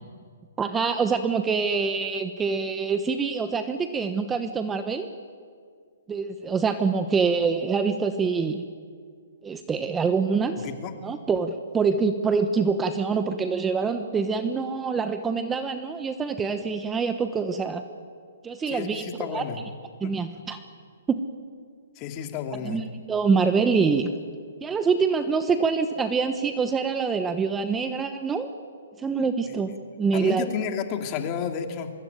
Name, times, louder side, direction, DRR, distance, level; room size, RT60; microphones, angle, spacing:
voice 1, 0.6-5.1 6.1-8.6 9.4-10.7 11.0-17.8 18.4-19.5 20.0-20.6 21.1-21.2 22.6-24.1 24.6-28.5 29.0-30.5, right 5 dB, 10° right, 9 dB, 1.1 m, -25 dB
voice 2, 10.6-10.9 18.7-19.6 20.0-20.1 22.0-22.8 29.5-29.6 30.1-31.9, left 7 dB, 30° left, 5 dB, 2.7 m, -31 dB
24.0 x 23.0 x 9.3 m, 2.1 s
hypercardioid pair, 145°, 0 cm